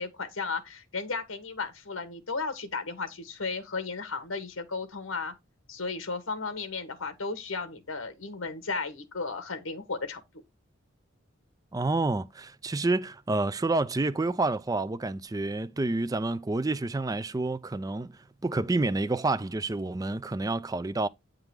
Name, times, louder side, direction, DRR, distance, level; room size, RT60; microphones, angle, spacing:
voice 1, 0.0-5.3 5.7-10.2, left 4 dB, 90° left, 1.4 m, -34 dB
voice 2, 11.7-18.1 18.4-21.1, right 2 dB, 20° right, 0.4 m, -29 dB
8.9 x 3.7 x 4.8 m
head